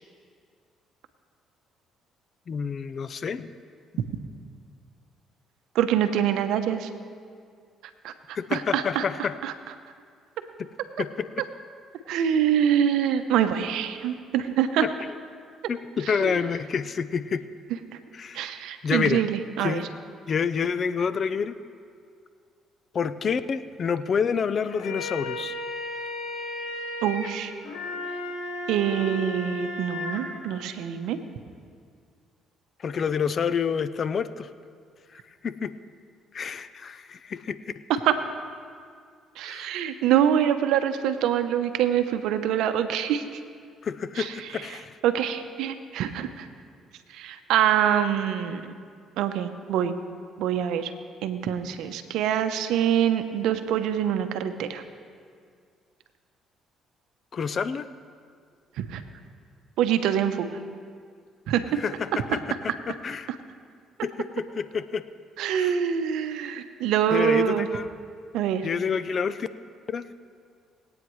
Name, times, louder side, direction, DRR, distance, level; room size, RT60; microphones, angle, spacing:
voice 1, 2.5-3.5 8.3-9.3 11.0-11.3 14.8-15.2 15.7-17.4 18.1-18.5 18.8-19.2 19.6-19.9 20.3-21.5 22.9-25.5 32.8-34.5 35.4-35.7 36.3-37.6 39.4-39.7 43.8-45.0 57.3-57.9 61.8-62.4 62.9-63.3 64.0-65.0 65.6-65.8 67.1-67.8 68.6-69.5 69.9-70.1, left 6 dB, 50° left, 14 dB, 0.5 m, -28 dB
voice 2, 5.7-6.9 8.0-8.1 8.5-9.5 12.1-14.9 16.2-16.4 18.3-19.8 27.0-27.5 28.7-31.2 37.9-38.2 39.4-43.2 44.2-44.5 45.0-46.5 47.1-48.6 49.2-49.9 50.4-50.9 51.2-54.8 58.8-59.0 59.8-60.5 61.5-61.8 63.3-63.4 65.4-67.7 68.3-68.7, right 9 dB, 80° right, 9 dB, 0.8 m, -25 dB
sound 1, 24.6-30.2, left 2 dB, 85° left, 1.7 m, -34 dB
21.0 x 8.9 x 3.1 m, 2.2 s
supercardioid pair, 70°, 0 cm